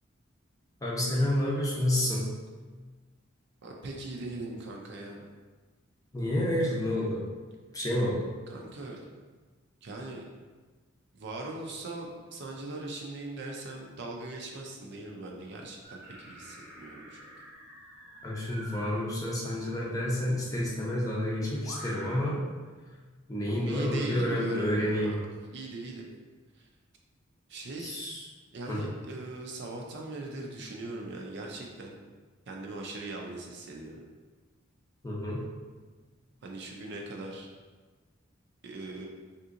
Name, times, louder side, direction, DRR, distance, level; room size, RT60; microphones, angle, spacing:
voice 1, 0.8-2.2 6.1-7.2 7.7-8.2 18.2-22.4 23.3-25.1 27.8-28.2 28.7-28.8 35.0-35.4, left 1 dB, 15° left, -5 dB, 0.6 m, -29 dB
voice 2, 3.6-5.2 8.5-9.0 9.8-10.2 11.1-17.2 23.5-25.2 25.5-26.1 26.6-26.7 27.5-28.0 28.5-31.9 32.5-34.0 36.4-37.5 38.6-39.1, right 2 dB, 60° right, 0 dB, 0.5 m, -40 dB
sound 1, 15.8-18.9 20.3-20.4 21.6-22.2, right 1 dB, 10° right, 0.9 m, -47 dB
3.5 x 2.8 x 2.5 m, 1.3 s
head